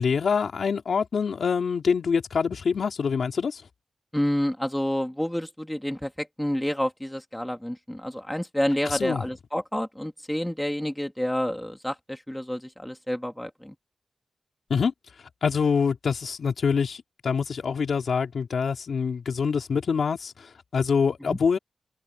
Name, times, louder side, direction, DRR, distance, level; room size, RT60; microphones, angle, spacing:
voice 1, 0.0-3.6 8.8-9.2 14.7-14.9 15.4-21.6, left 6 dB, 75° left, 3.2 m, -25 dB
voice 2, 4.1-13.7 21.2-21.4, equal, 5° left, 2.8 m, -29 dB
open air
cardioid pair, 75°, 0 cm